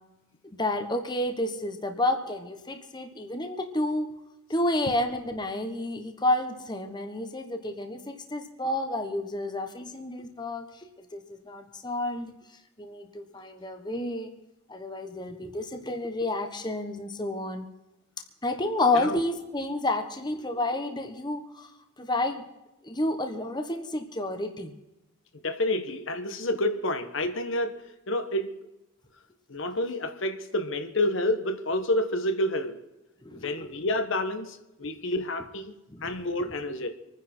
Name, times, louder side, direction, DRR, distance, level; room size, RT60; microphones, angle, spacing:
voice 1, 0.6-4.1 4.5-12.3 12.8-14.3 14.7-17.7 18.4-21.7 22.0-22.4 22.8-24.7 33.2-33.7 35.9-36.2, left 1 dB, 20° left, 1.1 m, -30 dB
voice 2, 25.4-28.6 29.5-32.8 33.3-35.7 36.0-36.9, left 1 dB, 60° left, 1.2 m, -29 dB
26.0 x 10.0 x 4.4 m
head